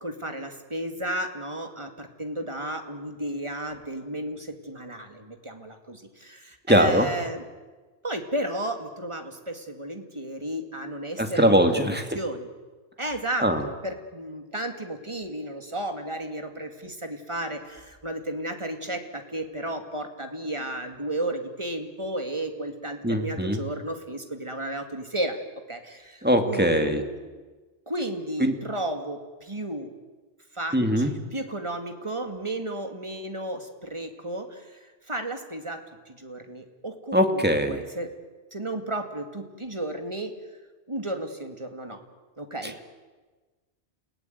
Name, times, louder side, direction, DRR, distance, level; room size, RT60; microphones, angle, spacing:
voice 1, 0.0-4.4 4.7-5.1 5.5-5.7 6.7-7.4 8.0-9.2 9.8-11.9 12.1-12.4 13.0-17.6 18.0-19.0 19.3-25.3 25.7-25.8 26.4-27.1 27.9-29.2 29.5-29.9 30.6-30.7 31.3-33.6 33.9-34.4 35.1-35.8 36.2-38.1 38.5-40.3 40.9-42.0 42.4-42.7, right 1 dB, 25° right, 5 dB, 2.4 m, -33 dB
voice 2, 6.7-7.1 11.2-12.0 13.4-13.6 23.0-23.6 26.2-27.0 28.4-28.5 30.7-31.1 37.1-37.8 42.6-42.7, equal, 10° right, 5 dB, 2.2 m, -21 dB
30.0 x 17.5 x 9.3 m, 1.3 s
omnidirectional pair, 1.2 m